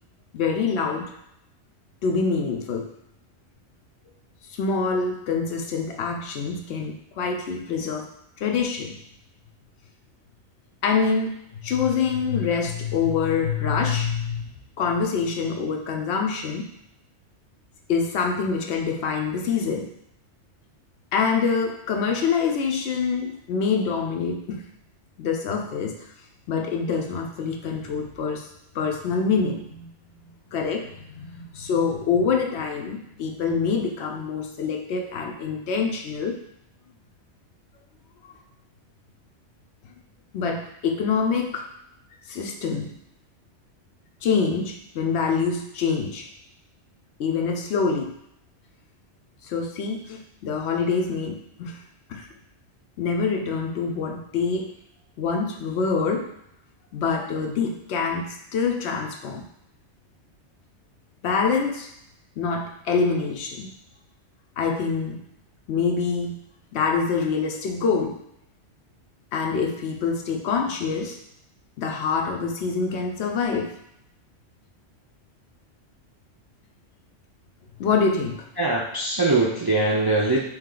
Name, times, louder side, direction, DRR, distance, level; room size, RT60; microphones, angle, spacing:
voice 1, 0.3-1.1 2.0-2.9 4.6-8.1 8.4-8.9 10.8-14.5 14.8-16.7 17.9-19.9 21.1-24.6 25.2-26.1 26.5-28.5 28.7-29.9 30.2-36.4 38.2-38.3 40.3-41.7 42.3-42.9 44.2-46.3 47.2-48.1 49.4-51.8 52.1-52.3 53.0-54.7 55.2-56.3 56.9-59.4 61.2-61.9 62.4-63.7 64.6-65.2 65.7-66.4 66.7-68.2 69.3-71.2 71.8-73.7 77.8-78.5, left 5 dB, 75° left, 2 dB, 0.9 m, -25 dB
voice 2, 78.6-80.4, right 2 dB, 40° right, -4 dB, 0.3 m, -22 dB
3.2 x 3.1 x 3.7 m, 0.78 s
omnidirectional pair, 1.1 m